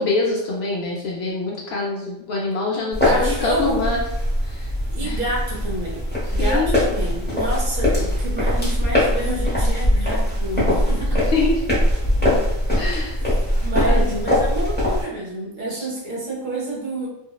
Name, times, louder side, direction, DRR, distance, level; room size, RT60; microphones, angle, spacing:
voice 1, 0.0-4.0 4.4-4.7 5.0-5.2 6.3-6.8 11.3-11.8 12.8-13.2 13.8-14.3 15.7-15.9, left 3 dB, 65° left, -3 dB, 0.7 m, -25 dB
sound 1, 2.9-15.0, left 1 dB, 10° left, 0.5 m, -21 dB
voice 2, 3.1-3.8 4.9-6.0 6.3-11.2 12.2-12.4 13.6-17.1, right 2 dB, 75° right, -3 dB, 1.1 m, -29 dB
2.7 x 2.0 x 2.3 m, 0.87 s
omnidirectional pair, 1.4 m